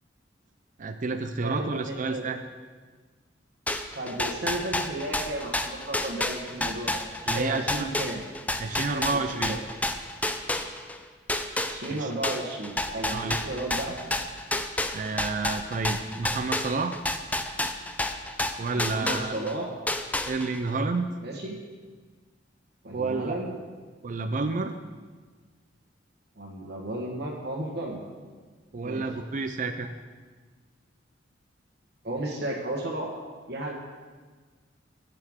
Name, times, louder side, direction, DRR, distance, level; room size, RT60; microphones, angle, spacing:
voice 1, 0.8-2.4 7.3-7.9 8.6-9.6 11.9-12.1 13.1-13.4 14.9-17.0 18.6-19.3 20.3-21.1 22.9-23.3 24.0-24.7 28.7-29.9, right 3 dB, 45° right, 7 dB, 0.5 m, -30 dB
voice 2, 1.4-2.2 3.9-8.2 8.7-9.6 11.7-14.0 18.7-19.7 21.2-21.6 22.8-23.6 26.4-28.0 28.8-29.1 32.0-33.1 33.5-33.7, right 1 dB, 60° right, -1 dB, 1.4 m, -34 dB
sound 1, 3.7-11.0 11.3-19.5 19.9-20.7, left 1 dB, 10° left, 0.5 m, -29 dB
17.0 x 6.7 x 3.7 m, 1.4 s
head